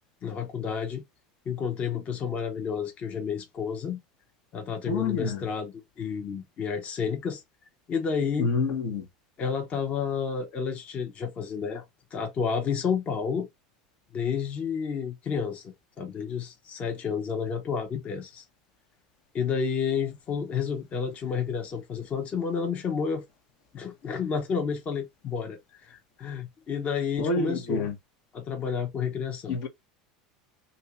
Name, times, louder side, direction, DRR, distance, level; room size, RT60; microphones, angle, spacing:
voice 1, 0.2-1.0 1.5-4.0 4.5-7.4 7.9-8.5 9.4-11.8 12.1-13.5 14.1-18.4 19.3-23.2 23.7-27.9 28.3-29.6, left 6 dB, 40° left, 1.0 m, -30 dB
voice 2, 4.9-5.4 8.4-9.0 27.2-28.0 29.5-29.7, left 4 dB, 60° left, 1.1 m, -27 dB
2.9 x 2.7 x 3.4 m
hypercardioid pair, 95°, 3 cm